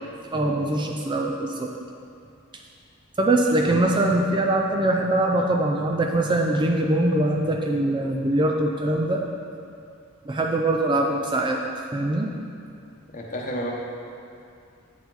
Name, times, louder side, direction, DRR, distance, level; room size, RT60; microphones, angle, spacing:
voice 1, 0.3-1.7 3.2-9.2 10.3-11.6 11.9-12.3, right 1 dB, 20° right, 1 dB, 0.3 m, -22 dB
voice 2, 13.1-13.7, equal, 35° left, -2 dB, 0.9 m, -32 dB
8.8 x 4.7 x 3.9 m, 2.4 s
head